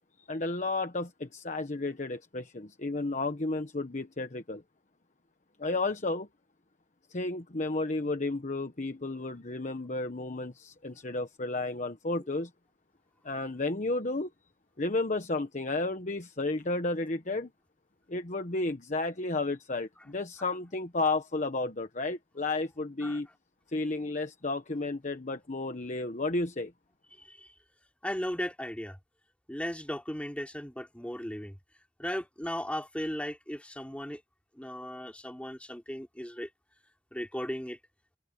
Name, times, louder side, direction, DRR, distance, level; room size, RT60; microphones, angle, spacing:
voice 1, 0.3-4.6 5.6-6.3 7.1-12.5 13.2-14.3 14.8-17.5 18.1-23.3 23.7-26.7, left 2 dB, 45° left, 1.2 m, -32 dB
voice 2, 27.2-27.5 28.0-29.0 29.5-31.6 32.0-34.2 34.6-36.5 37.1-37.8, equal, 5° left, 3.7 m, -36 dB
head